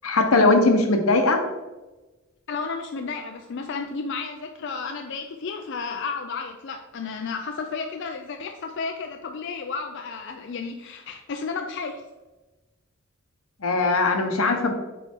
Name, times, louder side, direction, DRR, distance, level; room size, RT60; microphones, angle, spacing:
voice 1, 0.0-1.4 13.6-14.7, left 3 dB, 85° left, 4 dB, 1.1 m, -20 dB
voice 2, 2.5-12.0, left 4 dB, 55° left, 4 dB, 0.4 m, -32 dB
8.3 x 4.2 x 3.7 m, 1.1 s
head